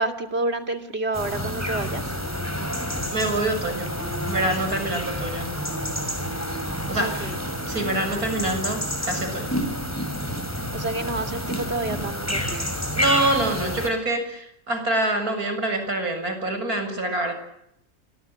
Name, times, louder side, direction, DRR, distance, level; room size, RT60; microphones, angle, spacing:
voice 1, 0.0-2.0 7.0-7.4 10.7-12.7, right 2 dB, 45° right, 7 dB, 3.1 m, -29 dB
sound 1, 1.1-13.9, equal, 10° left, 5.6 m, -29 dB
voice 2, 3.1-3.9 4.3-5.5 6.9-7.3 7.7-9.6 13.0-17.3, right 1 dB, 80° right, 7 dB, 7.7 m, -26 dB
27.0 x 22.0 x 9.2 m, 0.74 s
omnidirectional pair, 1.5 m